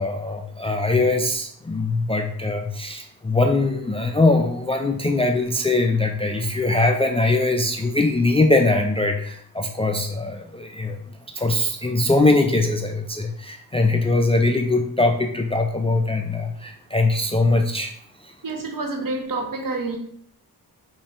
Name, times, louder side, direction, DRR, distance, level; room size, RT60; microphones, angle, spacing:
voice 1, 0.0-11.0 11.3-17.9 18.2-18.3, left 2 dB, 15° left, 3 dB, 0.3 m, -21 dB
voice 2, 18.4-20.0, right 3 dB, 55° right, 2 dB, 0.9 m, -28 dB
5.1 x 2.7 x 2.4 m, 0.62 s
cardioid pair, 65°, 39 cm